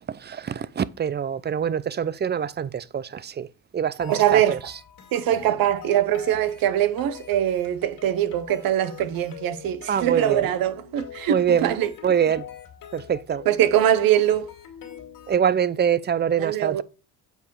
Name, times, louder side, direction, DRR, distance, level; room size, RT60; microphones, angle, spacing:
voice 1, 0.1-4.6 9.9-10.5 11.3-12.5 12.9-13.5 15.3-16.8, right 8 dB, 30° right, 0.5 m, -25 dB
sound 1, 4.0-15.4, left 9 dB, 70° left, 2.3 m, -43 dB
voice 2, 4.1-4.6 5.1-11.9 13.5-14.5 16.4-16.8, right 11 dB, 80° right, 1.0 m, -22 dB
7.9 x 4.8 x 4.7 m
cardioid pair, 90°, 35 cm